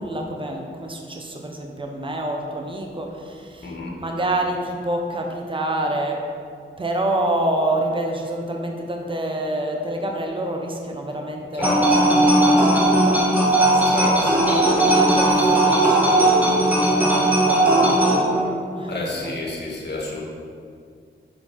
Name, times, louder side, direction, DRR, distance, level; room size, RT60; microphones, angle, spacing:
voice 1, 0.0-6.2 6.8-14.2 14.9-19.3, right 1 dB, 25° right, 2 dB, 1.0 m, -28 dB
voice 2, 3.6-4.0 11.5-11.8 13.7-14.7 18.9-20.2, left 2 dB, 55° left, -2 dB, 1.7 m, -30 dB
sound 1, 11.6-18.2, right 1 dB, 10° right, 1.6 m, -17 dB
6.7 x 5.2 x 4.5 m, 2.2 s
cardioid pair, 50°, 20 cm